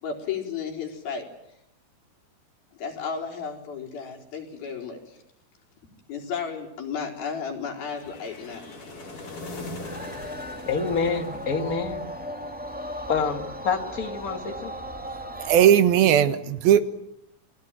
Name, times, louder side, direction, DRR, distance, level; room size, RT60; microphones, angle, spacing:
voice 1, 0.0-1.3 2.8-5.2 6.1-8.6, left 6 dB, 70° left, 1 dB, 6.0 m, -33 dB
sound 1, 7.9-12.1, left 2 dB, 55° left, 7.4 m, -40 dB
sound 2, 9.8-15.7, equal, 5° right, 1.5 m, -36 dB
voice 2, 10.7-12.0 13.1-14.7, left 5 dB, 30° left, 5 dB, 2.0 m, -27 dB
voice 3, 15.4-16.8, right 10 dB, 75° right, 11 dB, 3.2 m, -17 dB
29.0 x 21.0 x 9.1 m, 0.79 s
omnidirectional pair, 4.4 m